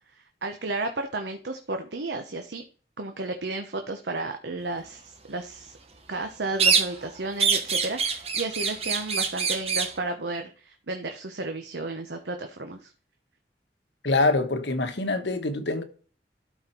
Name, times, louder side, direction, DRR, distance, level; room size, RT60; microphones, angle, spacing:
voice 1, 0.4-2.6 3.0-5.7 6.1-12.9, right 2 dB, 80° right, 1.0 m, -33 dB
sound 1, 6.6-7.1 7.4-10.0, right 5 dB, 35° right, 1.3 m, -25 dB
voice 2, 14.0-15.8, left 2 dB, 90° left, 1.3 m, -25 dB
12.5 x 4.4 x 4.4 m
head